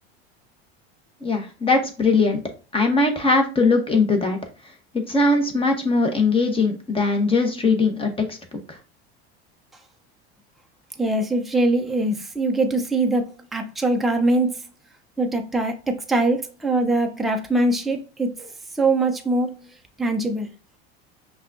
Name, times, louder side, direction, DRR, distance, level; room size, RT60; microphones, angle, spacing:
voice 1, 1.2-2.4 2.7-4.4 5.1-8.4 8.7-8.8, left 3 dB, 15° left, 1.0 m, -20 dB
voice 2, 11.0-14.6 15.2-19.7 20.0-20.5, right 2 dB, ahead, 0.5 m, -23 dB
5.5 x 2.3 x 2.6 m
supercardioid pair, 95°, 31 cm